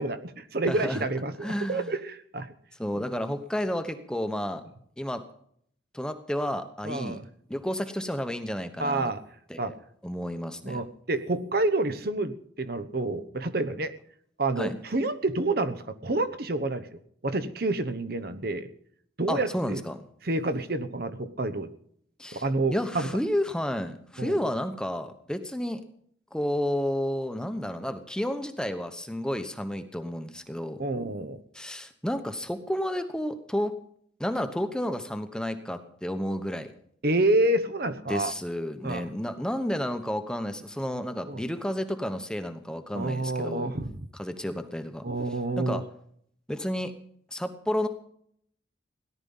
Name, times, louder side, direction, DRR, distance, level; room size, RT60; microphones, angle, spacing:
voice 1, 0.0-2.5 2.9-3.0 6.8-7.2 8.8-9.2 9.6-9.7 10.6-13.9 14.4-18.7 19.2-19.8 20.2-21.7 22.3-23.1 24.2-24.4 30.8-31.4 37.0-38.3 38.8-39.1 41.3-41.5 42.9-43.9 45.0-45.8, right 2 dB, 50° right, 11 dB, 1.0 m, -28 dB
voice 2, 0.7-1.0 1.4-1.9 2.8-4.6 5.0-5.2 5.9-7.2 7.5-9.1 9.5-9.7 10.0-10.8 14.6-14.8 19.3-20.0 22.2-22.4 22.7-25.8 26.3-30.8 31.5-33.7 34.2-36.7 38.1-43.7 44.1-45.0 45.6-45.8 46.5-46.9 47.3-47.9, equal, 5° left, 8 dB, 1.0 m, -31 dB
17.5 x 11.5 x 5.6 m, 0.65 s
head